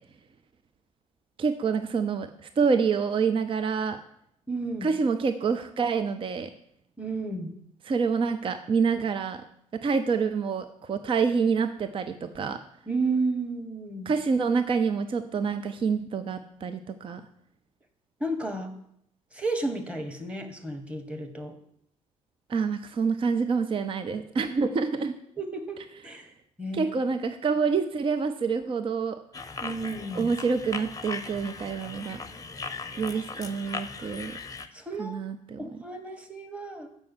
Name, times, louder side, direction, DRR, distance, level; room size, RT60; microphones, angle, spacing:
voice 1, 1.4-2.3 2.6-4.0 4.8-6.5 7.9-9.4 9.8-12.6 14.1-17.2 22.5-25.1 26.7-29.2 30.1-32.2 33.0-34.3 35.0-35.6, right 5 dB, 30° right, 9 dB, 0.6 m, -27 dB
voice 2, 4.5-4.9 7.0-7.5 12.9-14.1 18.2-18.7 19.3-21.5 25.4-26.3 26.6-26.9 29.6-30.3 33.1-33.2 34.7-35.2 35.6-36.9, right 2 dB, 5° right, 4 dB, 1.5 m, -32 dB
sound 1, 29.3-34.7, left 4 dB, 20° left, 0.8 m, -38 dB
6.9 x 5.4 x 6.3 m, 0.72 s
figure-of-eight pair, 50°, 18 cm